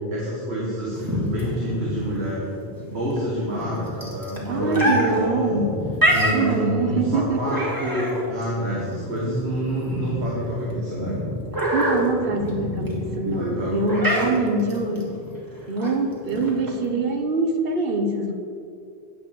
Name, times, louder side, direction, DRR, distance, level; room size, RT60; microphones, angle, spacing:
voice 1, 0.1-2.5 2.8-5.7 6.1-11.2 13.3-14.5, equal, 80° right, -5 dB, 2.0 m, -28 dB
sound 1, 0.9-16.9, equal, 20° right, 1.8 m, -27 dB
voice 2, 4.5-5.8 6.3-7.5 11.7-15.2 15.7-18.3, right 3 dB, 65° right, 5 dB, 1.1 m, -24 dB
9.6 x 5.1 x 7.6 m, 2.5 s
omnidirectional pair, 1.1 m